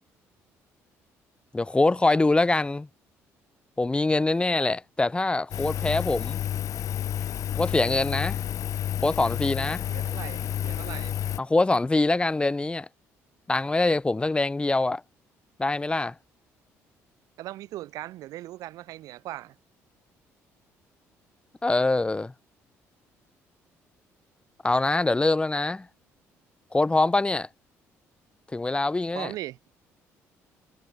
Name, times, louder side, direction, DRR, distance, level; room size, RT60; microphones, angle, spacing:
voice 1, 1.5-2.9 3.8-6.4 7.6-8.4 9.0-9.9 11.4-12.9 13.5-15.0 15.6-16.1 21.6-22.3 24.6-25.9 26.7-27.5 28.5-29.3, left 2 dB, 15° left, 2.4 m, -24 dB
Engine, 5.5-11.4, left 11 dB, 65° left, 2.6 m, -30 dB
voice 2, 9.9-11.2 17.4-19.6 29.1-29.6, right 15 dB, 80° right, 4.3 m, -39 dB
cardioid pair, 85°, 6 cm